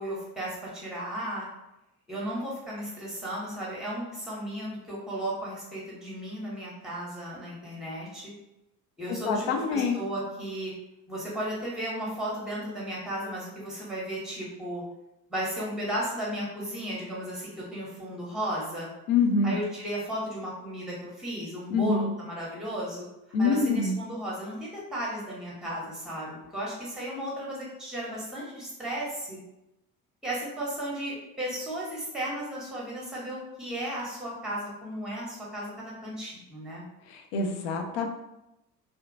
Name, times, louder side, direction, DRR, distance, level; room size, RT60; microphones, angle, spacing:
voice 1, 0.0-1.5 2.1-8.3 9.0-10.7 11.1-14.8 15.3-18.9 19.4-23.1 23.4-29.4 30.2-36.8, equal, ahead, -5 dB, 1.1 m, -35 dB
voice 2, 9.2-10.0 19.1-19.6 21.7-22.1 23.3-24.0 37.1-38.1, left 4 dB, 55° left, 4 dB, 0.5 m, -25 dB
2.7 x 2.1 x 2.6 m, 0.91 s
figure-of-eight pair, 55°, 46 cm